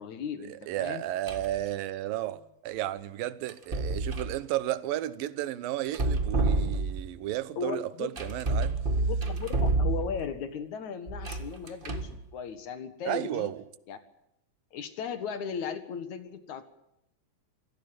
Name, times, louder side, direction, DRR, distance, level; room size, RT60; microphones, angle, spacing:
voice 1, 0.0-1.0 7.6-8.1 9.1-13.5 13.9-14.0 14.7-16.6, left 7 dB, 60° left, 2.8 m, -36 dB
voice 2, 0.7-8.8 13.1-13.6, right 14 dB, 85° right, 2.7 m, -33 dB
sound 1, 1.3-1.6 3.5-4.4 5.8-7.2 8.2-10.3 11.1-12.2, right 3 dB, 55° right, 0.6 m, -29 dB
26.0 x 17.0 x 7.6 m
omnidirectional pair, 4.0 m